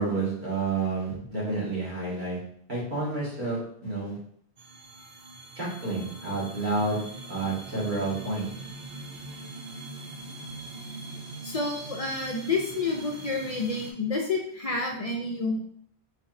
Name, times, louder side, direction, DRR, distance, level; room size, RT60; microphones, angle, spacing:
voice 1, 0.0-2.4 2.7-4.2 5.6-7.0 7.3-8.5, right 3 dB, 45° right, -7 dB, 1.7 m, -29 dB
sound 1, 4.6-13.9, right 2 dB, 80° right, 0.9 m, -42 dB
voice 2, 11.4-15.6, left 3 dB, 50° left, 0 dB, 0.4 m, -29 dB
4.1 x 3.4 x 2.5 m, 0.64 s
omnidirectional pair, 1.1 m